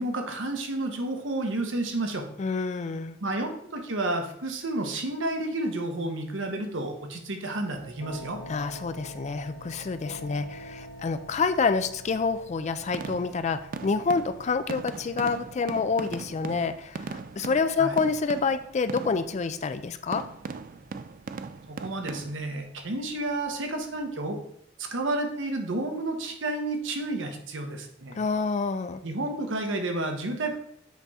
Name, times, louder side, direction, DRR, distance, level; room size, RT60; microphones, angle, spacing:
voice 1, 0.0-2.2 3.2-8.4 17.8-18.0 21.7-24.4 24.8-28.2 29.0-30.6, right 2 dB, 80° right, 5 dB, 1.1 m, -31 dB
voice 2, 2.4-3.2 8.5-20.2 28.2-29.0, left 4 dB, 35° left, 11 dB, 0.4 m, -28 dB
sound 1, 7.7-24.1, equal, 65° left, 1.0 m, -48 dB
sound 2, 12.8-19.4 20.1-22.3, right 4 dB, 45° right, 0.4 m, -39 dB
8.1 x 3.6 x 4.1 m, 0.68 s
head